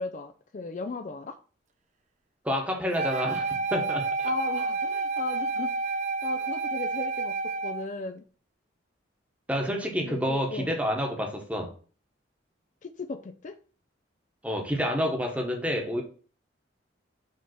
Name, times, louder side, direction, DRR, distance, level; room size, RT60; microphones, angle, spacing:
voice 1, 0.0-1.4 4.2-5.8 6.2-8.2 10.0-10.7 12.8-13.6, left 4 dB, 40° left, 0.4 m, -37 dB
voice 2, 2.4-4.3 9.5-11.7 14.4-16.0, equal, 5° right, 1.1 m, -29 dB
Wind instrument woodwind instrument, 2.9-7.8, right 3 dB, 40° right, 0.6 m, -29 dB
5.2 x 3.4 x 5.7 m
head